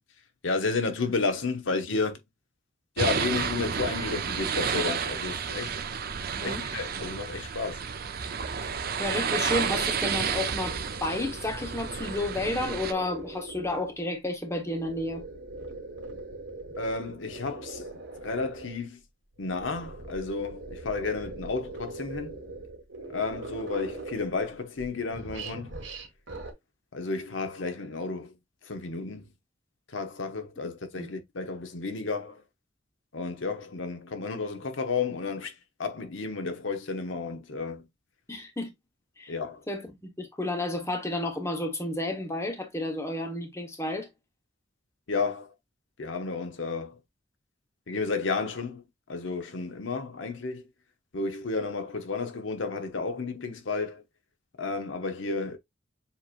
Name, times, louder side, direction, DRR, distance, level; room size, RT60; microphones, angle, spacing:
voice 1, 0.4-2.2 3.0-5.7 6.4-7.8 16.8-17.9 18.2-19.0 19.4-22.4 23.1-25.7 26.9-28.3 28.6-29.2 29.9-32.4 33.1-35.5 35.8-37.8 39.3-39.6 45.1-45.5 46.0-47.0 47.9-48.8 49.1-50.6 51.1-54.0 54.6-55.6, left 4 dB, 80° left, 0.9 m, -32 dB
sound 1, 3.0-12.9, right 6 dB, 55° right, 0.6 m, -31 dB
voice 2, 6.3-6.6 8.6-8.7 9.0-15.2 31.0-31.1 38.3-38.7 39.2-39.3 39.7-44.1, left 2 dB, 15° left, 1.1 m, -31 dB
sound 2, 7.5-14.0 14.4-18.8 19.4-24.5 24.8-26.5, right 2 dB, 75° right, 1.7 m, -42 dB
7.1 x 3.0 x 2.5 m
head